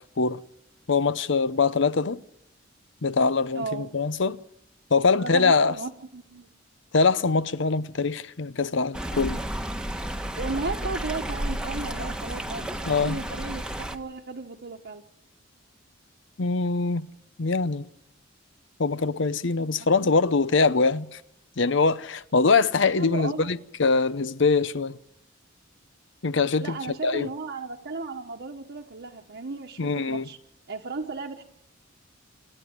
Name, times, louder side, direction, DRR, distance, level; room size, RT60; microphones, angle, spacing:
voice 1, 0.9-2.2 3.0-4.4 4.9-5.7 6.9-9.4 12.9-13.2 16.4-17.1 17.4-17.8 18.8-21.2 21.6-25.0 26.2-27.3 29.8-30.3, left 4 dB, 65° left, 0.8 m, -23 dB
voice 2, 3.5-3.9 5.2-6.5 9.9-10.1 10.3-15.0 19.8-20.1 23.0-23.5 26.6-30.4 30.7-31.4, right 3 dB, 60° right, 1.2 m, -35 dB
Stream, 8.9-14.0, right 1 dB, 5° right, 1.2 m, -32 dB
27.5 x 10.0 x 9.5 m
head